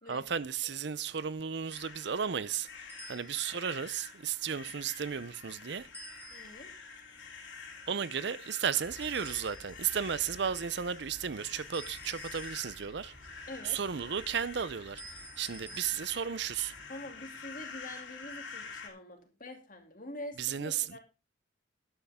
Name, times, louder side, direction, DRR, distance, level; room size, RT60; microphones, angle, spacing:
voice 1, 0.1-5.9 7.9-13.2 13.6-16.7 20.4-21.0, right 7 dB, 55° right, 0.5 m, -34 dB
sound 1, 1.7-18.9, left 5 dB, 65° left, 3.5 m, -48 dB
sound 2, 2.9-3.7 5.9-6.8 9.0-9.9 11.7-13.2 15.0-15.9, right 1 dB, 10° left, 2.4 m, -50 dB
voice 2, 6.3-6.7 13.5-13.8 16.9-21.0, left 1 dB, 40° left, 2.7 m, -45 dB
Traffic noise roadway noise, 8.8-16.8, equal, 20° right, 3.3 m, -56 dB
12.5 x 11.5 x 3.6 m
head